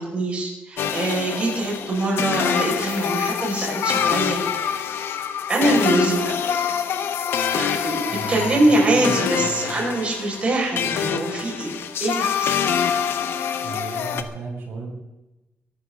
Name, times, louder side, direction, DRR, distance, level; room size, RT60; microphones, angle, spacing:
voice 1, 0.0-4.4 5.5-6.6 7.5-11.7 12.0-12.6, right 2 dB, 30° right, -1 dB, 5.0 m, -23 dB
sound 1, 0.8-14.2, left 8 dB, 85° left, 1.2 m, -25 dB
voice 2, 8.1-9.7 13.6-15.0, right 3 dB, 80° right, -1 dB, 5.2 m, -34 dB
23.0 x 12.5 x 3.7 m, 1.0 s
wide cardioid pair, 170°, 4 cm